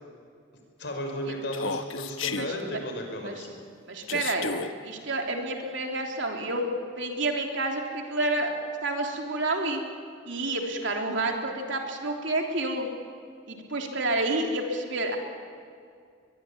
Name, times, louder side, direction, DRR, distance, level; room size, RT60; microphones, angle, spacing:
voice 1, 0.8-3.5, equal, 55° left, 3 dB, 5.4 m, -34 dB
Human voice, 1.5-2.5 4.1-4.7, left 5 dB, 75° left, 1.2 m, -32 dB
voice 2, 2.3-2.8 3.2-3.4 3.9-4.6 4.8-6.7 7.0-8.5 8.8-9.8 10.2-12.9 13.5-15.2, right 2 dB, 65° right, 2 dB, 3.4 m, -29 dB
23.0 x 22.5 x 8.8 m, 2.3 s
head